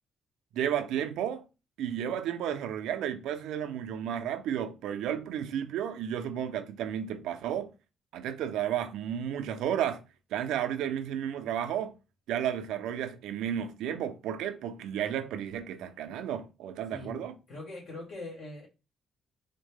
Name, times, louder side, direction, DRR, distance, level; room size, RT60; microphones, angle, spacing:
voice 1, 0.5-1.4 1.8-7.7 8.1-10.0 10.3-11.9 12.3-17.4, right 9 dB, 90° right, 0.5 m, -32 dB
voice 2, 16.9-18.7, left 2 dB, 65° left, 1.7 m, -42 dB
3.9 x 2.1 x 3.3 m
cardioid pair, 90°, 0 cm